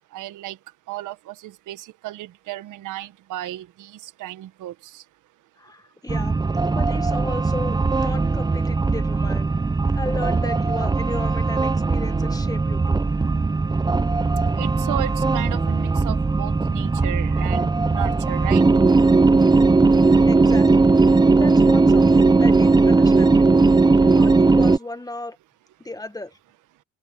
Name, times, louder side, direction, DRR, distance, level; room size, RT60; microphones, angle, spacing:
voice 1, 0.1-0.6 0.9-5.0 14.6-18.6, right 14 dB, 85° right, 1.5 m, -34 dB
voice 2, 5.6-6.4 6.7-9.5 9.9-13.0 20.2-20.9 21.4-23.6 24.0-25.4 25.8-26.4, left 2 dB, 10° left, 1.6 m, -35 dB
sound 1, 6.1-24.8, right 3 dB, 15° right, 0.6 m, -18 dB
cardioid pair, 90°, 30 cm